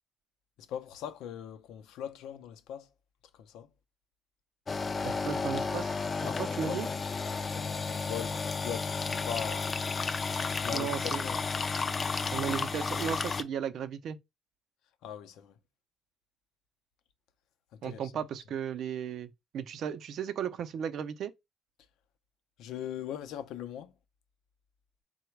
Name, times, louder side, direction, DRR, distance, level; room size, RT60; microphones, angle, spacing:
voice 1, 0.7-2.9 3.4-3.7 6.3-7.0 7.5-9.7 10.6-11.4 15.0-15.5 17.8-18.0 22.6-23.9, left 9 dB, 80° left, 0.5 m, -40 dB
sound 1, 4.7-13.4, left 4 dB, 25° left, 0.3 m, -32 dB
voice 2, 5.0-6.0 6.2-6.9 10.7-11.2 12.3-14.2 17.8-21.3, right 8 dB, 55° right, 0.5 m, -35 dB
3.9 x 2.1 x 4.4 m
cardioid pair, 145°, 0 cm